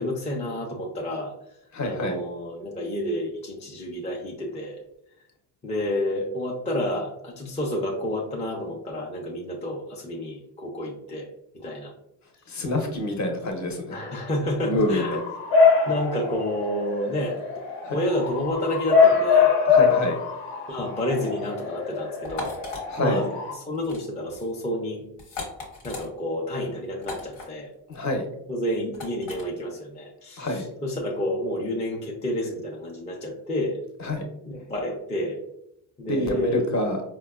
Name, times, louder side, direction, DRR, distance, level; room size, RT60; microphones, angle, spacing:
voice 1, 0.0-1.3 1.8-4.8 5.6-11.9 13.9-15.2 15.9-17.4 17.9-19.6 20.7-22.5 23.0-25.0 25.8-27.7 28.5-33.8 34.4-35.4 36.0-36.6, left 1 dB, 15° left, -1 dB, 0.4 m, -29 dB
voice 2, 1.7-2.2 12.5-14.0 14.6-15.2 17.8-18.0 19.7-20.2 22.9-23.2 27.9-28.2 30.4-30.7 34.0-34.2 36.1-37.0, left 1 dB, 40° left, 3 dB, 0.8 m, -26 dB
Bark / Motor vehicle (road) / Siren, 14.8-23.5, left 5 dB, 70° left, 0.9 m, -23 dB
sound 1, 22.2-22.8 23.7-24.0 24.3-24.5 25.2-26.1 27.0-27.5 28.9-29.4, left 3 dB, 90° left, 1.2 m, -37 dB
4.4 x 2.2 x 2.3 m, 0.79 s
cardioid pair, 95°, 46 cm